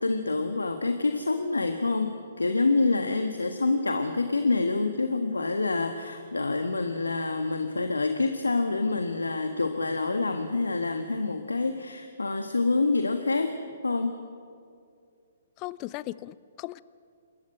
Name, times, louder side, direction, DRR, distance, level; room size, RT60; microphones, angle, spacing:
voice 1, 0.0-13.6 13.8-14.1, left 3 dB, 90° left, 6 dB, 1.5 m, -27 dB
voice 2, 15.6-16.8, left 17 dB, 30° left, 18 dB, 0.6 m, -37 dB
28.0 x 14.0 x 8.8 m, 2.3 s
figure-of-eight pair, 130°, 0 cm